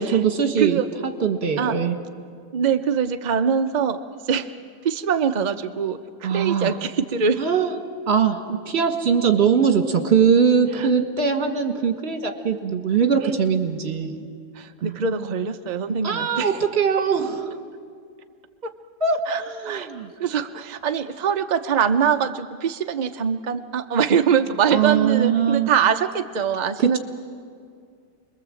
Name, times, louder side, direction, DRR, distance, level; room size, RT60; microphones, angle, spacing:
voice 1, 0.0-2.0 6.2-6.7 7.4-7.7 8.1-14.3 14.8-15.3 16.0-17.5 19.0-20.1 24.7-25.7 26.8-27.0, right 6 dB, 40° right, 5 dB, 1.7 m, -21 dB
voice 2, 2.5-4.5 4.8-7.4 10.7-10.9 13.2-13.3 14.5-16.6 18.6-18.7 19.3-19.9 20.2-27.0, right 7 dB, 65° right, 7 dB, 0.4 m, -23 dB
29.0 x 21.5 x 7.6 m, 2.2 s
omnidirectional pair, 1.8 m